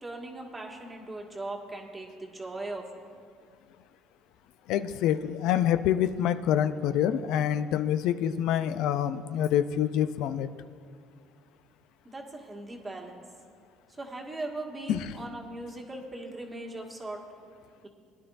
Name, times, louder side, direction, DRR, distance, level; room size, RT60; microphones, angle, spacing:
voice 1, 0.0-2.9 12.0-13.2 14.0-17.2, right 2 dB, 20° right, 1 dB, 1.7 m, -39 dB
voice 2, 4.7-10.5 14.9-15.1, left 10 dB, 70° left, 12 dB, 0.4 m, -26 dB
20.5 x 10.5 x 2.6 m, 2.1 s
supercardioid pair, 85°, 0 cm